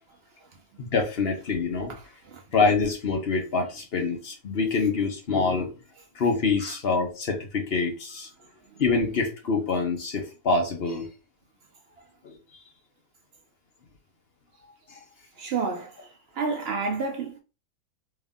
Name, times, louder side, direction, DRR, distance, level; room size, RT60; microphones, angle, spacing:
voice 1, 0.8-1.9 2.5-5.7 6.1-8.3 8.8-11.1 12.2-12.3 14.9-15.0, left 4 dB, 45° left, 0.8 m, -25 dB
voice 2, 1.9-2.4 6.6-6.8 8.7-8.8 15.4-17.4, right 4 dB, 70° right, 0.5 m, -31 dB
3.3 x 2.6 x 3.6 m
omnidirectional pair, 1.8 m